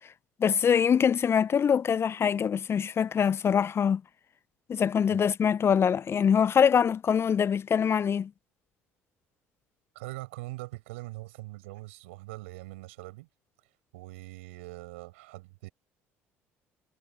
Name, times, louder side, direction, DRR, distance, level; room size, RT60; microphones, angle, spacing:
voice 1, 0.4-4.0 4.7-8.3, left 7 dB, 40° left, 0.6 m, -24 dB
voice 2, 9.9-13.3 13.9-15.7, right 21 dB, 75° right, 6.8 m, -42 dB
figure-of-eight pair, 55°, 7 cm